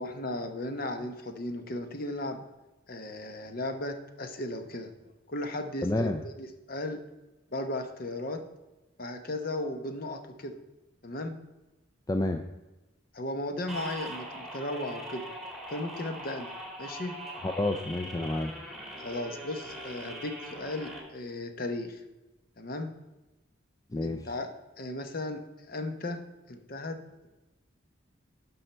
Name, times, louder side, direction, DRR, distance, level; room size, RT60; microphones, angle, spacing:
voice 1, 0.0-2.4 2.9-4.9 5.3-6.1 6.4-7.0 7.5-8.4 9.0-10.6 11.0-11.4 13.1-15.3 15.7-16.5 16.8-17.1 19.0-22.0 22.6-22.9 24.0-24.5 24.8-26.2 26.5-27.0, left 1 dB, 45° left, 7 dB, 0.9 m, -36 dB
voice 2, 5.8-6.2 12.1-12.4 17.4-18.5 23.9-24.2, left 2 dB, 20° left, 6 dB, 0.4 m, -29 dB
sound 1, 13.7-21.0, right 1 dB, ahead, 1.5 m, -41 dB
11.0 x 5.5 x 4.4 m, 1.0 s
head